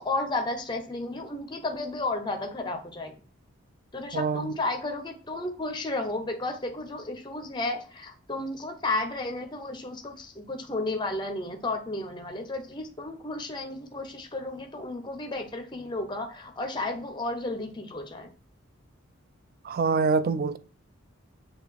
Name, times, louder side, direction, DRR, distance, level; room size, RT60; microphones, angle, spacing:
voice 1, 0.0-3.1 3.9-18.3, left 2 dB, 20° left, 0.6 m, -33 dB
voice 2, 4.1-4.5 19.6-20.6, right 5 dB, 45° right, 0.3 m, -25 dB
6.5 x 2.3 x 3.4 m
head